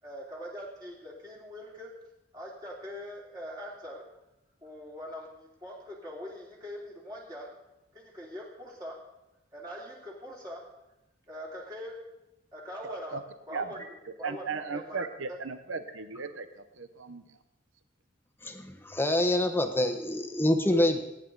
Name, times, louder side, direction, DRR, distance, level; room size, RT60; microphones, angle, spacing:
voice 1, 0.0-2.0 2.3-4.1 4.6-7.6 7.9-9.1 9.5-10.7 11.3-12.1 12.5-13.9 14.2-14.4 14.7-15.4, equal, 20° right, 2.8 m, -42 dB
voice 2, 12.8-13.2 13.5-13.7 14.2-17.2, right 4 dB, 75° right, 0.9 m, -36 dB
voice 3, 18.4-21.0, left 1 dB, 10° left, 1.1 m, -26 dB
21.0 x 10.0 x 4.0 m
head